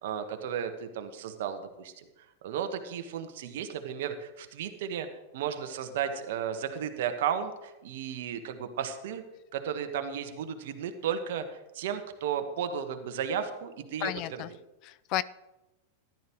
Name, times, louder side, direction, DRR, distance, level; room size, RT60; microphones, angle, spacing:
voice 1, 0.0-1.9 2.4-5.1 5.3-9.2 9.5-14.4, right 8 dB, 65° right, 7 dB, 1.3 m, -34 dB
voice 2, 14.0-14.5 14.8-15.2, left 15 dB, 45° left, 19 dB, 0.3 m, -32 dB
14.0 x 12.0 x 3.1 m, 1.0 s
hypercardioid pair, 100°, 0 cm